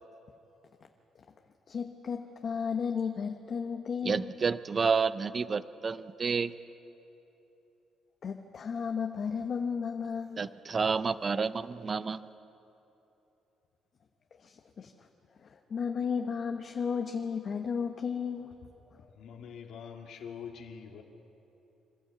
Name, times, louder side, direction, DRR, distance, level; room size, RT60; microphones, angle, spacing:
voice 1, 1.7-4.3 8.2-10.5 14.4-15.1 15.4-18.5, left 6 dB, 50° left, 4 dB, 1.1 m, -34 dB
voice 2, 4.0-6.5 10.4-12.2, right 5 dB, 35° right, 15 dB, 0.6 m, -30 dB
voice 3, 19.2-21.0, left 7 dB, 75° left, 3 dB, 2.0 m, -44 dB
27.0 x 13.0 x 8.3 m, 3.0 s
cardioid pair, 110°, 0 cm